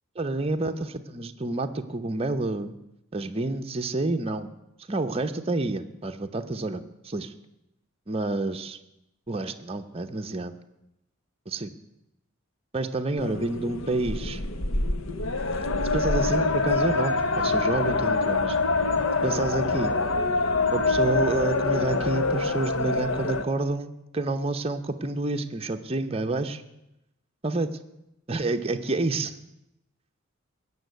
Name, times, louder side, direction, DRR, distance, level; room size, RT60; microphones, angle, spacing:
voice 1, 0.2-2.7 3.1-4.5 4.9-7.3 8.1-8.8 9.3-10.5 11.5-11.7 12.7-14.4 15.9-18.6 19.2-19.9 20.7-26.6 27.4-27.7 28.3-29.4, right 2 dB, 25° right, 6 dB, 0.8 m, -29 dB
sound 1, 13.2-23.4, left 3 dB, 70° left, 1.0 m, -25 dB
16.5 x 7.1 x 9.4 m, 0.89 s
head